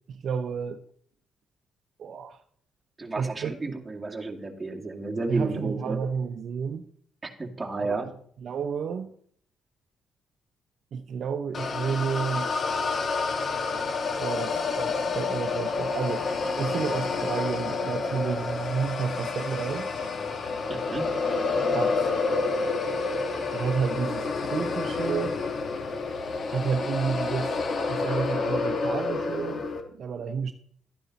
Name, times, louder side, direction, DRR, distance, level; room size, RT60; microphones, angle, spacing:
voice 1, 0.1-0.8 2.0-2.4 3.2-3.5 5.3-6.9 7.8-8.1 8.4-9.1 10.9-12.5 14.2-16.2 16.5-19.9 21.7-22.1 23.5-25.4 26.5-30.5, right 6 dB, 60° right, 0.7 m, -31 dB
voice 2, 3.0-6.0 7.2-8.1 20.7-21.1, right 3 dB, 15° right, 2.2 m, -32 dB
sound 1, 11.5-29.8, left 4 dB, 45° left, 1.6 m, -29 dB
12.5 x 9.9 x 4.1 m
cardioid pair, 90°, 0 cm